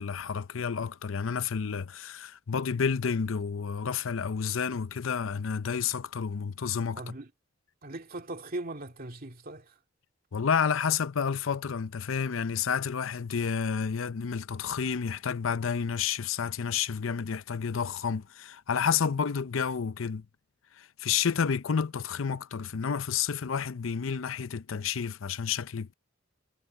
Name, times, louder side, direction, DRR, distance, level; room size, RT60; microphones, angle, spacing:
voice 1, 0.0-7.0 10.3-20.3 20.7-25.9, left 6 dB, 85° left, 0.6 m, -30 dB
voice 2, 7.0-7.3 7.8-9.7, right 2 dB, 45° right, 2.3 m, -39 dB
head